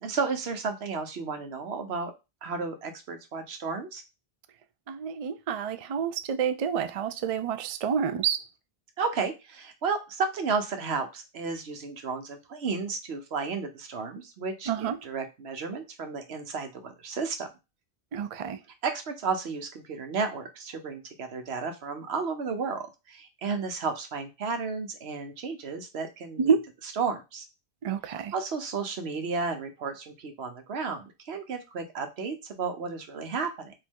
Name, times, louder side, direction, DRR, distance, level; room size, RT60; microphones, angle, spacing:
voice 1, 0.0-2.1 2.4-4.0 9.0-17.5 18.8-26.5 27.0-27.5 28.1-33.7, right 5 dB, 85° right, 1.1 m, -33 dB
voice 2, 4.9-8.5 14.7-15.0 18.1-18.6 26.4-26.6 27.8-28.3, right 7 dB, 50° right, 0.4 m, -28 dB
5.0 x 2.7 x 3.6 m
omnidirectional pair, 1.1 m